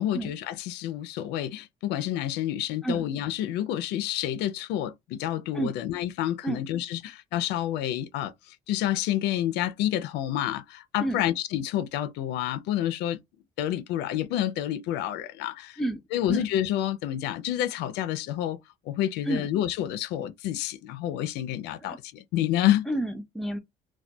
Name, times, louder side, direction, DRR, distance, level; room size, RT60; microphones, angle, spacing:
voice 1, 0.0-13.2 13.6-15.8 16.1-18.6 18.9-22.8, left 12 dB, 85° left, 0.4 m, -29 dB
voice 2, 22.9-23.6, right 1 dB, ahead, 0.5 m, -29 dB
2.2 x 2.1 x 2.6 m
cardioid pair, 110°, 17 cm